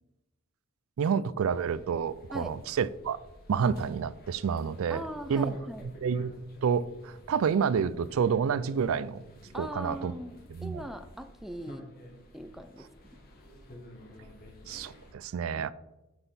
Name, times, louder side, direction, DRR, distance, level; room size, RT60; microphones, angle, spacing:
voice 1, 1.0-3.2 3.5-5.0 5.3-5.5 6.0-6.3 6.6-9.2 9.6-10.1 10.5-10.8 14.7-15.7, right 6 dB, 85° right, 0.4 m, -29 dB
sound 1, 1.5-15.1, equal, 45° left, 1.5 m, -52 dB
voice 2, 4.9-5.9 9.5-11.9 12.3-12.9, equal, ahead, 0.4 m, -40 dB
6.1 x 5.3 x 5.7 m
head